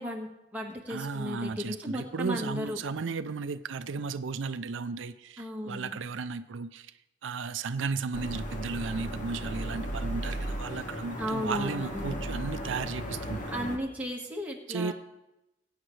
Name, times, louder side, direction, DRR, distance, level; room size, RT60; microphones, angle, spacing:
voice 1, 0.0-2.8 5.4-6.0 11.2-12.2 13.5-14.9, equal, 10° right, 1.5 m, -35 dB
voice 2, 0.9-6.9 7.2-13.4 14.7-14.9, right 4 dB, 85° right, 0.5 m, -34 dB
sound 1, 8.1-13.8, equal, 40° left, 1.4 m, -36 dB
21.0 x 8.9 x 3.2 m
head